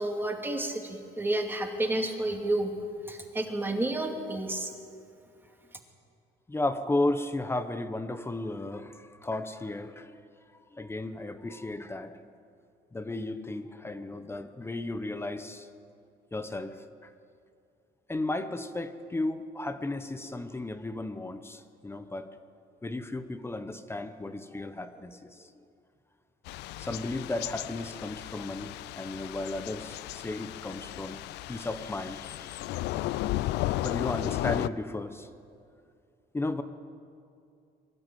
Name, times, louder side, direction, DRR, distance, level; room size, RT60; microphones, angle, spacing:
voice 1, 0.0-2.7 3.1-4.7, right 1 dB, 10° right, 3 dB, 2.5 m, -30 dB
voice 2, 6.5-10.2 10.7-12.2 12.9-15.7 16.3-17.1 18.1-22.3 22.8-25.5 26.8-28.7 29.0-31.2 31.5-32.7 33.8-35.3 36.3-36.6, left 2 dB, 15° left, 10 dB, 1.0 m, -34 dB
Thunder / Rain, 26.5-34.7, left 16 dB, 80° left, 0.5 m, -34 dB
23.0 x 12.5 x 9.3 m, 2.4 s
cardioid pair, 110°, 17 cm